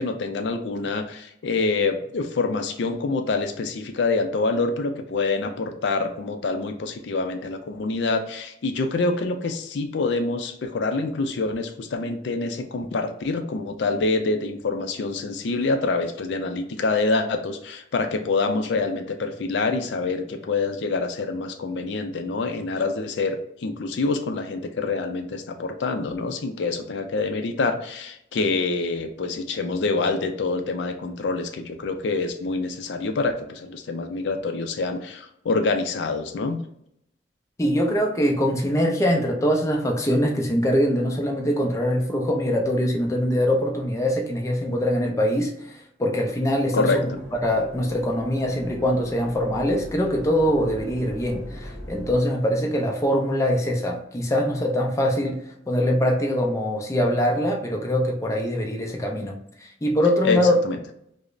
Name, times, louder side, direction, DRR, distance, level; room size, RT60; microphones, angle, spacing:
voice 1, 0.0-36.6 46.7-47.0 60.2-60.4 60.6-60.8, left 3 dB, 70° left, 6 dB, 0.4 m, -26 dB
voice 2, 37.6-47.0 47.4-60.5, equal, 15° left, 1 dB, 0.5 m, -23 dB
sound 1, 47.0-52.2, left 1 dB, 5° right, 1.0 m, -40 dB
4.9 x 2.0 x 2.5 m, 0.74 s
head